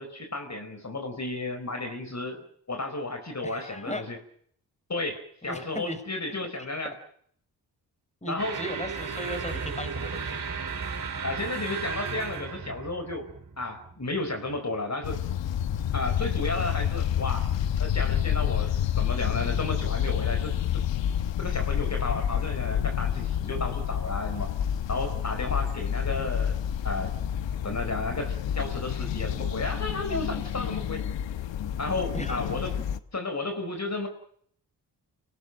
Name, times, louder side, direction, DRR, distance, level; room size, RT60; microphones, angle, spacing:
voice 1, 0.0-2.4 2.7-4.2 4.9-6.9 8.3-8.6 11.2-13.3 13.6-15.2 15.9-17.5 17.8-20.8 21.4-24.5 24.9-26.6 26.8-27.1 27.6-31.0 31.8-32.7 33.1-34.1, left 2 dB, 40° left, 6 dB, 4.7 m, -33 dB
voice 2, 3.4-4.0 5.4-6.4 8.2-10.4 32.1-32.5, equal, 15° left, 10 dB, 5.1 m, -37 dB
sound 1, 8.4-14.8, right 6 dB, 50° right, 6.1 m, -35 dB
sound 2, 15.0-33.0, left 9 dB, 80° left, 1.2 m, -29 dB
26.0 x 19.0 x 7.8 m, 0.65 s
supercardioid pair, 50°, 44 cm